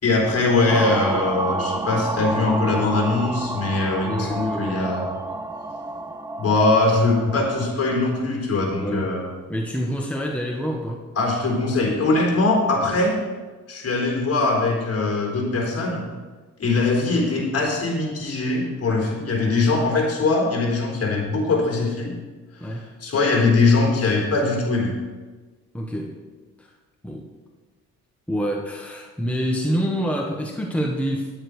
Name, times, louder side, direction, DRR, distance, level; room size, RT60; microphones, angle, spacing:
voice 1, 0.0-5.1 6.4-9.3 11.2-13.1 13.7-16.0 16.6-22.1 22.6-24.9, left 3 dB, 50° left, -1 dB, 4.0 m, -21 dB
sound 1, 0.7-7.7, right 2 dB, 10° right, 0.6 m, -29 dB
voice 2, 4.0-4.9 8.8-9.1 9.5-11.1 22.6-22.9 25.7-26.2 26.6-26.7 27.0-27.3 28.3-31.3, equal, 5° left, 1 dB, 1.1 m, -27 dB
10.5 x 8.6 x 4.8 m, 1.3 s
cardioid pair, 90°, 30 cm